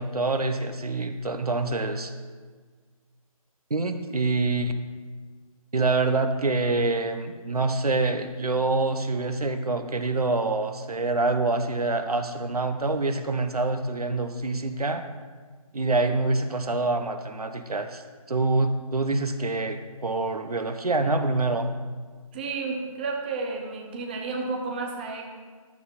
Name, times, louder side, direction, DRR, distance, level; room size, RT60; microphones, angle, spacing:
voice 1, 0.0-2.1 3.7-4.7 5.7-15.0 15.7-18.0 18.3-21.7, right 3 dB, 80° right, 8 dB, 1.1 m, -26 dB
voice 2, 22.3-25.2, right 4 dB, 15° right, 1 dB, 0.7 m, -31 dB
12.0 x 7.3 x 4.2 m, 1.5 s
figure-of-eight pair, 160°, 19 cm